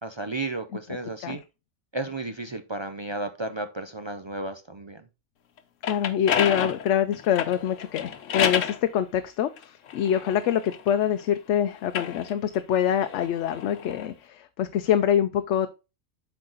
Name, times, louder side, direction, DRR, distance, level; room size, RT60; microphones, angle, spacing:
voice 1, 0.0-1.4 1.9-5.0, right 2 dB, 45° right, 7 dB, 0.3 m, -33 dB
sound 1, 5.6-8.8 9.6-11.3 11.8-14.1, left 8 dB, 90° left, 1.2 m, -30 dB
voice 2, 5.8-15.7, left 9 dB, 75° left, 10 dB, 0.9 m, -25 dB
7.9 x 4.6 x 3.9 m, 0.29 s
omnidirectional pair, 1.3 m